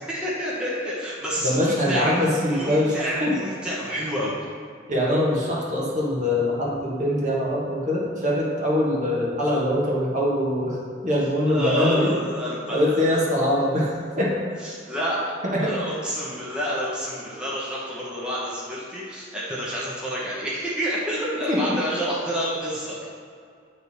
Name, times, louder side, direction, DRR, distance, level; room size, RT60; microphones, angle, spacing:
voice 1, 0.0-4.4 11.5-13.2 14.6-15.2 15.6-23.1, equal, 5° right, -7 dB, 1.0 m, -29 dB
voice 2, 1.4-2.9 3.2-3.4 4.9-10.8 11.0-12.1 12.7-13.9 14.2-14.3 15.4-15.7 21.5-21.7, left 1 dB, 40° right, -4 dB, 1.4 m, -23 dB
9.0 x 3.5 x 4.1 m, 2.3 s
head